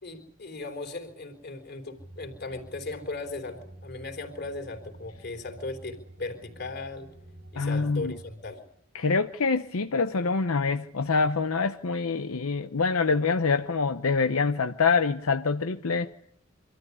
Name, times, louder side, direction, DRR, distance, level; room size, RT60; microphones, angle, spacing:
voice 1, 0.0-7.1 7.5-8.6, left 3 dB, 50° left, 3.8 m, -37 dB
sound 1, 2.0-8.3, right 1 dB, 85° right, 5.1 m, -49 dB
voice 2, 7.5-8.1 8.9-16.1, left 4 dB, 85° left, 0.8 m, -25 dB
25.5 x 13.5 x 9.8 m
head